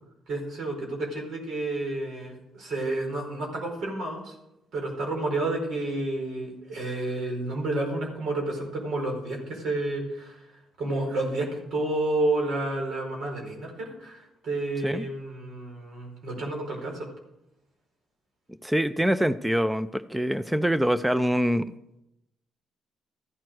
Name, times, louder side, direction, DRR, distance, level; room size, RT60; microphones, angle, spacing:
voice 1, 0.3-4.3 4.7-17.1, right 2 dB, 70° right, 0 dB, 4.6 m, -30 dB
voice 2, 18.6-21.7, equal, 5° right, 14 dB, 0.5 m, -24 dB
14.0 x 9.2 x 6.3 m, 0.86 s
cardioid pair, 90°, 0 cm